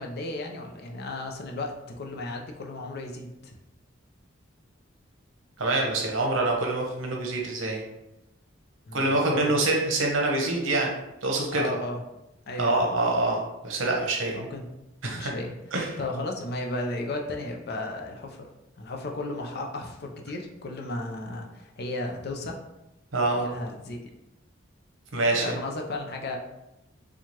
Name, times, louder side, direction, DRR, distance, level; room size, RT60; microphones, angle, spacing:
voice 1, 0.0-3.6 8.9-9.7 11.5-12.0 12.5-12.8 14.3-14.6 15.1-15.5 16.0-18.5 18.8-22.6 23.4-24.0 25.3-26.4, left 2 dB, 55° left, 2 dB, 0.6 m, -34 dB
voice 2, 5.6-7.8 8.9-11.7 12.6-14.4 15.0-15.3 15.7-16.0 23.1-23.5 25.1-25.4, right 2 dB, 70° right, 0 dB, 0.9 m, -25 dB
4.5 x 2.4 x 2.9 m, 0.92 s
head